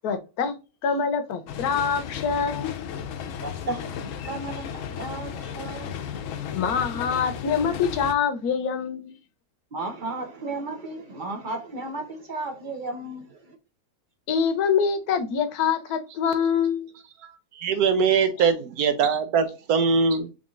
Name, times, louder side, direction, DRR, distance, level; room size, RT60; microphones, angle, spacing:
voice 1, 0.0-0.6 0.8-2.8 6.5-9.2 14.3-16.9, left 6 dB, 85° left, 1.2 m, -25 dB
sound 1, 1.5-8.1, left 8 dB, 70° left, 0.9 m, -34 dB
voice 2, 3.4-6.4 9.7-13.6, right 2 dB, 40° right, 0.8 m, -34 dB
voice 3, 17.2-20.3, right 5 dB, 90° right, 1.3 m, -22 dB
3.7 x 3.4 x 2.4 m
omnidirectional pair, 1.6 m